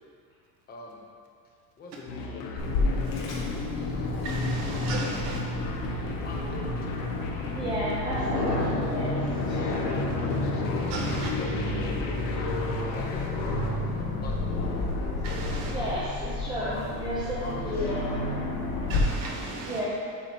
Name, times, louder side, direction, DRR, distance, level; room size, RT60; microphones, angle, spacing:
voice 1, 0.7-1.0 1.8-3.4 6.2-6.8 9.6-10.1 11.1-12.1 12.6-14.4 15.5-16.0 16.7-16.9 17.4-17.9, left 2 dB, 20° left, -2 dB, 0.9 m, -43 dB
sound 1, 2.1-13.7, left 3 dB, 90° left, 1.1 m, -36 dB
Aircraft, 2.6-19.0, left 2 dB, 70° left, 1.6 m, -30 dB
voice 2, 4.2-5.4 10.9-11.3 15.2-15.7 18.9-19.8, right 3 dB, 70° right, -1 dB, 1.4 m, -35 dB
voice 3, 7.5-9.1 9.4-9.9 15.6-18.0 19.6-19.8, equal, 10° right, -9 dB, 0.7 m, -32 dB
8.2 x 6.6 x 3.0 m, 2.4 s
cardioid pair, 175°, 45 cm